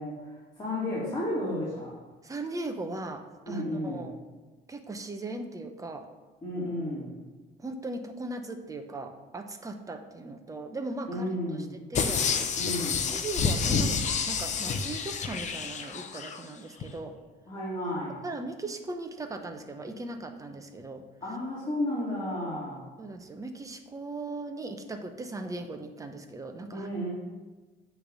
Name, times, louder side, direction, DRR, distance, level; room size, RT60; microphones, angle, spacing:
voice 1, 0.0-1.9 3.5-4.1 6.4-7.1 11.1-11.8 12.6-13.1 17.5-18.2 21.2-22.8 26.7-27.1, left 1 dB, 25° left, -8 dB, 2.4 m, -33 dB
voice 2, 2.2-4.2 4.7-6.1 7.6-12.2 13.1-14.0 14.3-17.1 18.2-21.0 23.0-26.9, right 2 dB, 20° right, 6 dB, 0.8 m, -38 dB
sound 1, 11.9-16.4 16.8-16.9, left 5 dB, 45° left, 0.7 m, -29 dB
8.5 x 3.4 x 6.7 m, 1.2 s
cardioid pair, 110°, 17 cm